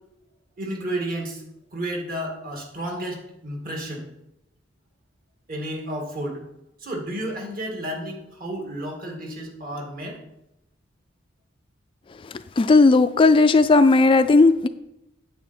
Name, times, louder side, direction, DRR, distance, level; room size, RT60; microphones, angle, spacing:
voice 1, 0.6-1.4 1.7-4.1 5.5-6.4 6.8-10.2, right 1 dB, 45° right, 1 dB, 2.2 m, -31 dB
voice 2, 12.6-14.7, left 3 dB, 25° left, 11 dB, 0.3 m, -15 dB
9.1 x 8.0 x 4.3 m, 0.87 s
head